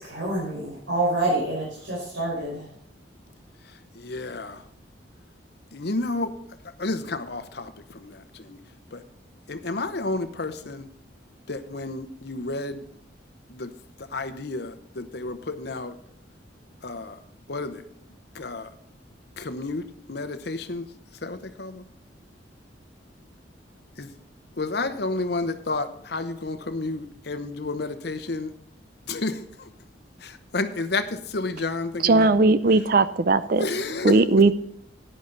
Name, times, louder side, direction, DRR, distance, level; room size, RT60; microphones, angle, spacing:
voice 1, 0.0-2.6, right 2 dB, 85° right, -6 dB, 5.1 m, -27 dB
voice 2, 4.0-4.6 5.7-6.3 6.8-7.7 8.0-8.6 8.9-9.0 9.5-10.9 11.5-12.8 13.5-13.7 14.1-15.9 16.8-17.1 17.5-17.8 18.4-18.7 19.4-19.8 20.1-20.8 21.2-21.8 24.0-24.1 24.6-28.5 29.1-29.4 30.2-31.1 31.3-32.3 33.6-34.2, left 3 dB, 60° left, 10 dB, 0.9 m, -30 dB
voice 3, 32.0-33.7 34.0-34.5, right 3 dB, 50° right, 14 dB, 0.5 m, -18 dB
11.0 x 10.0 x 4.0 m, 0.68 s
head